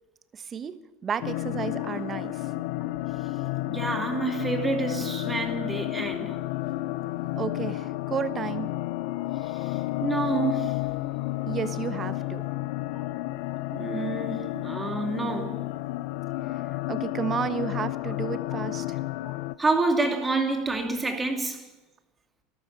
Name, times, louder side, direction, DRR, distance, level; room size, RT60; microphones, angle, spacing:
voice 1, 0.3-0.8 1.0-2.4 7.4-8.7 11.5-12.4 16.4-16.6 16.9-19.0, right 7 dB, 30° right, 1.1 m, -32 dB
sound 1, 1.2-19.6, left 17 dB, 65° left, 0.5 m, -31 dB
voice 2, 3.7-6.4 9.4-10.8 12.9-13.0 13.7-15.6 18.5-18.6 19.6-21.6, right 3 dB, 15° right, 2.7 m, -28 dB
13.0 x 12.5 x 8.5 m
hypercardioid pair, 90°, 0 cm